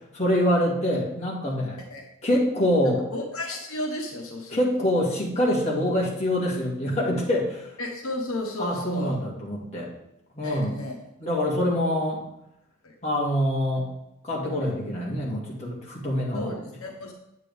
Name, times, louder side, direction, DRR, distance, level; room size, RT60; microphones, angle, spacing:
voice 1, 0.1-1.8 2.2-3.0 4.5-7.7 8.6-9.9 10.3-10.8 11.2-12.2 13.0-13.9 14.2-16.5, equal, 30° left, -4 dB, 2.3 m, -25 dB
voice 2, 3.1-4.6 7.8-9.2 10.4-11.0 12.8-12.9 16.3-17.1, left 1 dB, 85° left, 1 dB, 1.3 m, -33 dB
8.2 x 8.2 x 3.5 m, 0.84 s
head